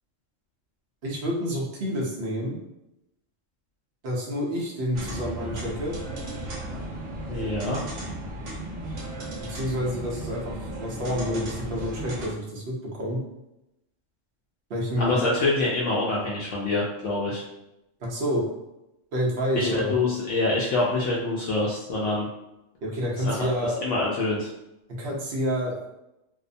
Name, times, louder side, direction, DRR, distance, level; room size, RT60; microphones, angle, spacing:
voice 1, 1.0-2.6 4.0-5.9 9.5-13.2 14.7-15.1 18.0-18.4 19.1-19.9 22.8-23.8 25.0-25.8, equal, 55° right, -3 dB, 0.8 m, -28 dB
sound 1, 4.9-12.3, right 1 dB, 80° right, 1.1 m, -35 dB
voice 2, 7.3-7.8 15.0-17.4 19.6-22.3 23.2-23.3 23.8-24.5, left 2 dB, 75° left, -5 dB, 0.9 m, -25 dB
2.7 x 2.0 x 2.5 m, 0.88 s
omnidirectional pair, 1.3 m